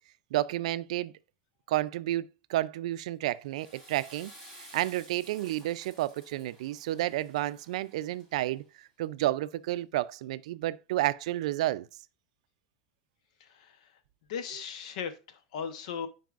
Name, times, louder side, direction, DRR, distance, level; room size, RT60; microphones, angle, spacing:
voice 1, 0.3-1.1 1.7-4.3 4.6-11.9, right 15 dB, 85° right, 0.3 m, -31 dB
Water / Toilet flush, 3.3-8.6, equal, 15° left, 2.3 m, -54 dB
voice 2, 13.4-13.8 14.3-16.1, left 7 dB, 80° left, 0.9 m, -37 dB
9.3 x 4.7 x 2.4 m
supercardioid pair, 180°, 4 cm